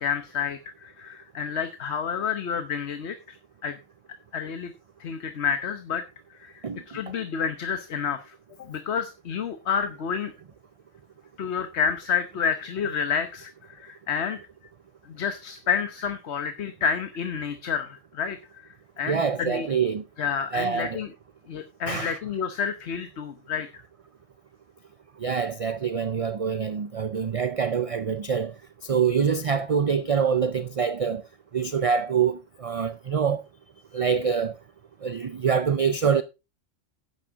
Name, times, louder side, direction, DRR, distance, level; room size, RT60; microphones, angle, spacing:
voice 1, 0.0-3.4 3.6-3.8 4.3-4.7 5.0-6.0 6.3-10.3 11.4-14.4 15.1-18.4 18.6-19.7 20.2-21.1 21.5-23.8, left 7 dB, 70° left, 1.2 m, -29 dB
voice 2, 19.0-20.0 20.5-21.0 21.9-22.2 25.2-28.5 28.8-31.2 31.5-33.4 33.9-34.6 35.0-36.2, right 6 dB, 45° right, 0.5 m, -25 dB
11.5 x 8.9 x 3.6 m
omnidirectional pair, 1.2 m